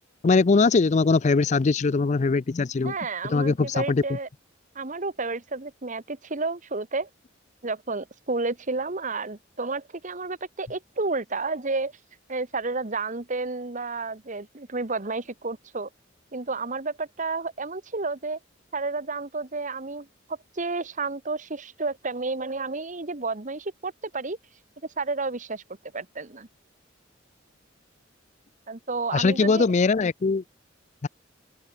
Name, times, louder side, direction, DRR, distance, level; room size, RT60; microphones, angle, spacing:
voice 1, 0.2-2.9 3.2-4.0 29.1-30.4 31.0-31.1, left 4 dB, 35° left, 0.4 m, -21 dB
voice 2, 2.8-4.3 4.7-7.1 7.6-11.9 12.3-15.9 16.3-18.4 18.7-24.4 25.0-25.6 25.9-26.5 28.7-29.7, right 3 dB, 40° right, 1.4 m, -31 dB
open air
head